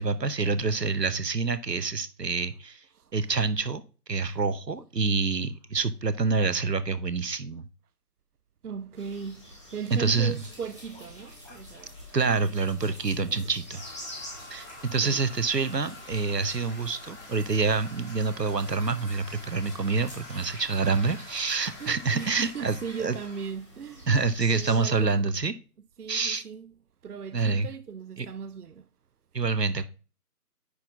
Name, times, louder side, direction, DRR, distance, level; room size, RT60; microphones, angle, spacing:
voice 1, 0.0-2.8 3.1-3.8 4.1-7.7 9.9-10.3 12.1-13.8 14.5-23.1 24.1-25.5 26.1-26.4 27.3-27.7 28.2-28.3 29.3-29.8, right 4 dB, 90° right, 0.9 m, -27 dB
voice 2, 8.6-12.0 12.4-12.5 13.1-13.4 15.0-15.3 21.8-24.1 24.5-25.2 26.0-26.7 27.0-28.9, right 6 dB, 70° right, 0.5 m, -38 dB
sound 1, 8.9-25.0, left 1 dB, 20° left, 1.4 m, -49 dB
sound 2, 10.3-22.5, left 1 dB, 10° right, 2.0 m, -51 dB
Toilet flush, 13.8-23.5, left 2 dB, 45° left, 1.9 m, -47 dB
9.7 x 4.1 x 3.5 m
figure-of-eight pair, 165°, 48 cm